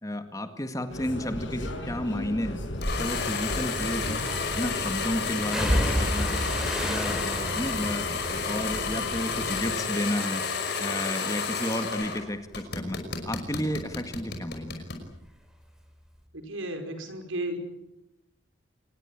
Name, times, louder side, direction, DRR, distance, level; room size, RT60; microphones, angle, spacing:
voice 1, 0.0-2.6 3.0-4.2 4.6-6.4 6.8-10.4 10.8-14.9, left 1 dB, 15° left, 7 dB, 1.9 m, -32 dB
sound 1, 0.9-9.8, left 1 dB, 70° left, 6.2 m, -37 dB
sound 2, 2.8-12.2 12.5-15.0, left 5 dB, 55° left, 5.6 m, -31 dB
sound 3, 2.8-3.0 4.3-4.7 5.5-9.8 10.1-10.7 11.1-14.4 14.6-15.8 16.0-16.2, equal, 5° right, 3.6 m, -33 dB
voice 2, 16.3-17.6, right 1 dB, 80° right, 6 dB, 5.3 m, -34 dB
26.0 x 20.5 x 8.9 m, 0.92 s
head